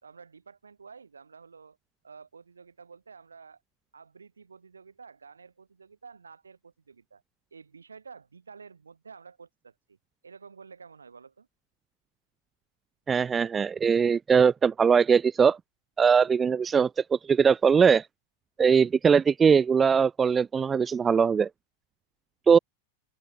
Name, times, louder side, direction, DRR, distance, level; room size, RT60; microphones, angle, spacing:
voice 1, 0.0-1.8 2.0-3.6 3.9-7.2 7.5-10.0 10.2-11.5, right 5 dB, 75° right, 5.7 m, -50 dB
voice 2, 13.1-15.6 16.0-18.1 18.6-21.5 22.5-22.6, right 6 dB, 20° right, 0.4 m, -21 dB
open air
figure-of-eight pair, 90°, 0 cm